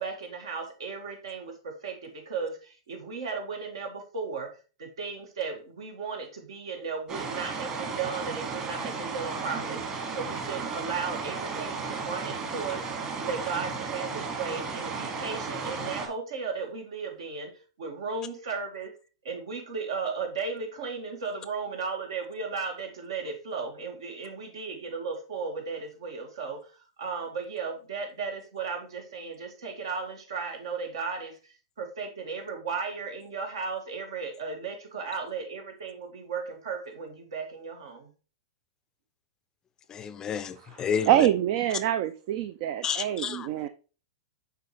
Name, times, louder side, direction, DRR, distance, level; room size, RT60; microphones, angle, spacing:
voice 1, 0.0-4.5 4.8-9.8 10.1-12.8 13.2-17.5 17.8-19.0 19.2-26.7 27.0-31.4 31.8-38.1, right 5 dB, 75° right, 3 dB, 2.0 m, -35 dB
sound 1, 7.1-16.1, right 5 dB, 30° right, 1.8 m, -34 dB
voice 2, 39.9-41.1 42.8-43.7, left 7 dB, 25° left, 14 dB, 0.5 m, -31 dB
voice 3, 40.6-43.7, right 12 dB, 50° right, 10 dB, 0.5 m, -26 dB
6.7 x 4.6 x 3.3 m, 0.34 s
hypercardioid pair, 120°, 3 cm